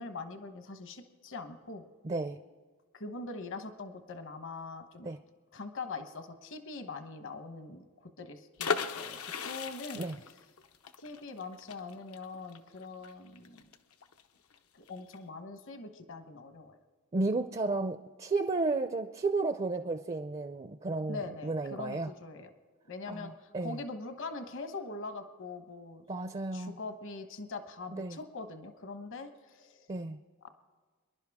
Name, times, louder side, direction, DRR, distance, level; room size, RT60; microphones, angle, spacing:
voice 1, 0.0-1.8 2.9-5.1 5.5-10.1 11.0-13.7 14.7-16.8 21.1-22.5 22.9-26.0 26.5-29.9, left 3 dB, 60° left, 8 dB, 1.1 m, -43 dB
voice 2, 2.0-2.4 5.0-5.2 10.0-10.2 17.1-22.1 23.1-23.8 26.1-26.8 27.9-28.2 29.9-30.2, right 3 dB, 30° right, 9 dB, 0.4 m, -33 dB
sound 1, 8.6-14.2 14.5-14.6 14.9-15.2, left 5 dB, 85° left, 0.8 m, -37 dB
25.0 x 11.5 x 3.6 m, 1.4 s
head